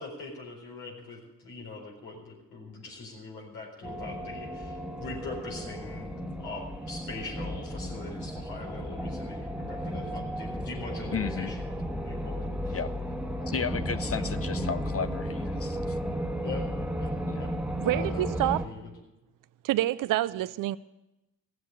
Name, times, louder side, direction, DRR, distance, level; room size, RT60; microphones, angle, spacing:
voice 1, 0.0-11.8 12.0-12.8 13.4-13.6 13.9-14.4 16.4-16.6 17.0-17.1 17.4-17.5 17.8-18.8, left 3 dB, 90° left, 4.4 m, -42 dB
sound 1, 3.8-18.7, equal, 5° right, 1.3 m, -34 dB
voice 2, 11.1-11.5 12.7-12.9 13.5-16.0 17.3-17.5, left 6 dB, 40° left, 0.6 m, -33 dB
voice 3, 17.8-18.6 19.6-20.8, right 14 dB, 70° right, 0.5 m, -27 dB
16.0 x 7.7 x 8.9 m
supercardioid pair, 50°, 35 cm